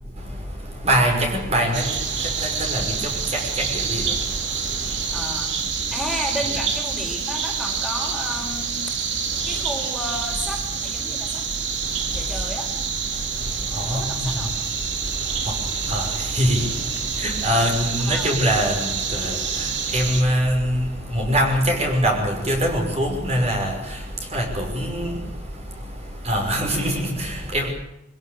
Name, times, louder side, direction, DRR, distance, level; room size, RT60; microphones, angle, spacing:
voice 1, 0.0-5.3 5.8-6.0 6.4-6.6 9.3-9.6 11.7-12.3 13.1-27.7, equal, 35° right, 5.7 m, -25 dB
sound 1, 1.7-20.2, right 6 dB, 70° right, 3.2 m, -27 dB
voice 2, 5.1-5.6 5.9-8.8 9.4-11.4 12.1-12.7 13.9-14.5 18.0-18.3, equal, ahead, 4.8 m, -32 dB
24.0 x 16.5 x 8.2 m
head